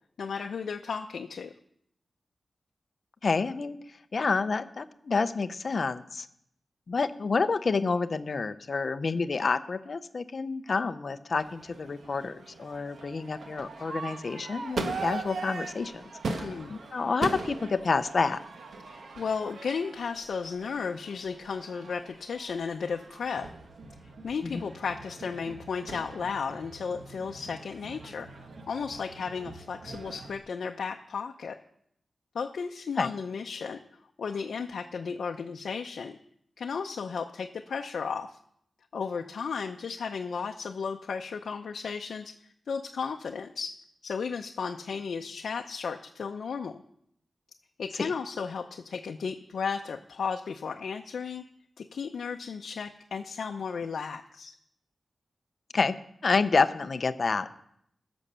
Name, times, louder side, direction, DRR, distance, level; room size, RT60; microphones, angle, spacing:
voice 1, 0.2-1.5 16.4-16.7 18.9-23.5 24.2-28.3 28.7-31.6 32.3-33.8 34.2-36.2 36.6-38.4 38.9-42.4 42.7-46.8 47.8-51.4 51.8-54.5, left 5 dB, 85° left, 4 dB, 0.6 m, -34 dB
voice 2, 3.2-3.8 4.1-6.3 6.9-18.4 24.4-24.6 33.0-33.1 48.0-48.1 55.7-56.0 56.2-57.5, left 4 dB, 45° left, 12 dB, 0.6 m, -28 dB
Crowd / Fireworks, 11.4-30.4, right 3 dB, 65° right, 1.0 m, -41 dB
15.5 x 6.2 x 6.8 m, 0.72 s
wide cardioid pair, 175°, 0 cm